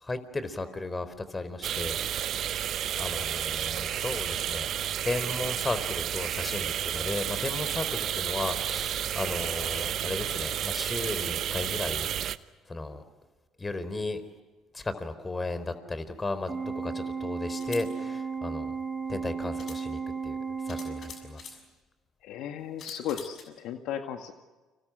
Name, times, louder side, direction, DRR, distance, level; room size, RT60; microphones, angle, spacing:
voice 1, 0.0-2.0 3.0-4.7 5.0-12.1 12.7-13.0 13.6-14.2 14.7-18.7 19.1-20.4 20.7-21.4, left 2 dB, 25° left, 12 dB, 4.2 m, -35 dB
sound 1, 1.6-12.4, right 10 dB, 60° right, 1.0 m, -31 dB
sound 2, 16.5-16.6 17.5-17.9 19.0-19.1 19.6-19.8 20.7-21.6 22.8-23.4, left 5 dB, 55° left, 6.7 m, -45 dB
Organ, 16.5-21.5, right 5 dB, 30° right, 4.3 m, -35 dB
voice 2, 22.2-24.3, left 9 dB, 70° left, 7 dB, 1.9 m, -35 dB
30.0 x 27.0 x 6.4 m, 1.3 s
hypercardioid pair, 60°, 0 cm